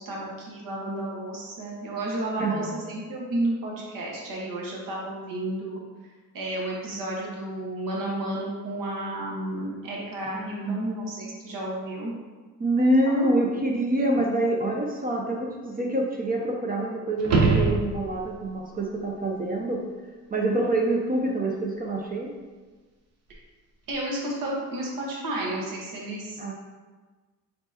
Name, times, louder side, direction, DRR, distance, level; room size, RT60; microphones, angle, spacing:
voice 1, 0.0-5.8 6.3-12.1 13.2-13.3 23.9-26.5, right 1 dB, 65° right, -3 dB, 1.3 m, -32 dB
voice 2, 2.4-2.8 10.3-10.9 12.6-19.8 20.3-22.3 26.4-26.5, right 1 dB, 25° right, 0 dB, 0.6 m, -26 dB
sound 1, 17.2-18.4 23.3-23.4, right 3 dB, 45° right, 0.9 m, -23 dB
4.4 x 4.0 x 2.8 m, 1.3 s
cardioid pair, 85°, 36 cm